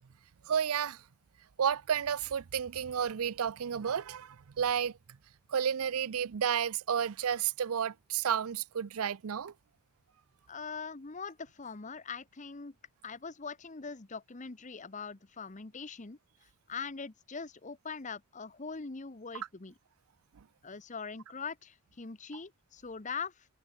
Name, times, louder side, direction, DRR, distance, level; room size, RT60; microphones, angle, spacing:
voice 1, 0.5-1.0 1.6-4.9 5.5-9.5, right 8 dB, 80° right, 0.5 m, -31 dB
voice 2, 10.5-12.7 13.0-16.2 16.7-19.7 20.6-23.5, left 5 dB, 35° left, 0.9 m, -42 dB
head